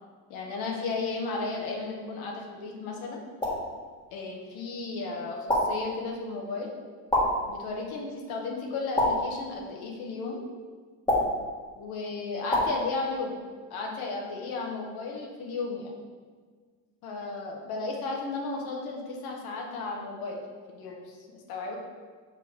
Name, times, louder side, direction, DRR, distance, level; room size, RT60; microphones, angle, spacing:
voice 1, 0.3-3.2 4.1-6.7 7.5-10.4 11.8-13.4 13.7-16.0 17.0-20.4 20.7-21.8, left 3 dB, 65° left, -1 dB, 1.3 m, -34 dB
sound 1, 3.4-3.7 5.5-5.9 7.1-7.5 9.0-9.4 11.1-11.5 12.5-12.8, left 1 dB, 10° left, 1.5 m, -25 dB
6.1 x 5.2 x 3.4 m, 1.5 s
cardioid pair, 130°, 40 cm